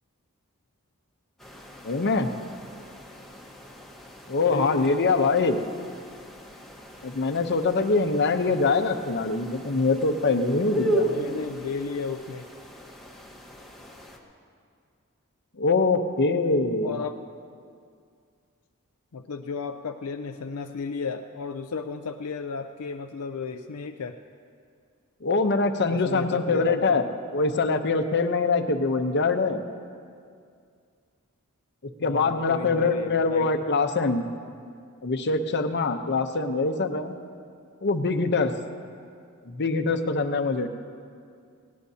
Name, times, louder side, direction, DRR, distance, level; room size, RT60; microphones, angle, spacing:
sound 1, 1.4-14.2, right 2 dB, ahead, 1.2 m, -36 dB
voice 1, 1.8-2.3 4.3-5.6 7.0-11.1 15.6-17.0 25.2-27.0 27.3-29.6 32.0-34.3 35.0-37.2 37.8-38.6 39.5-40.7, left 3 dB, 50° left, 7 dB, 0.8 m, -24 dB
voice 2, 4.4-4.9 8.5-8.6 10.9-12.5 16.8-17.2 19.1-24.2 25.9-27.0 32.0-33.7, left 5 dB, 85° left, 6 dB, 0.5 m, -33 dB
20.0 x 18.0 x 2.8 m, 2.3 s
head